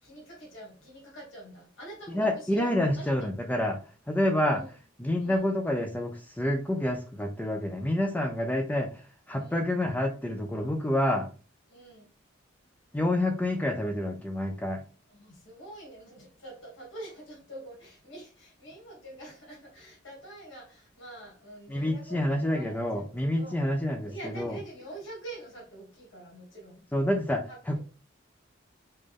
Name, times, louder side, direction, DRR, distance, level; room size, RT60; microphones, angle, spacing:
voice 1, 0.0-3.1 4.5-4.7 5.2-5.4 9.4-9.7 11.7-12.1 15.1-23.6 24.0-27.8, right 1 dB, 75° left, -4 dB, 2.5 m, -46 dB
voice 2, 2.1-3.8 4.1-4.6 5.0-11.3 12.9-14.8 21.7-24.6 26.9-27.8, left 1 dB, 10° left, 4 dB, 0.5 m, -28 dB
5.5 x 2.6 x 3.4 m, 0.36 s
head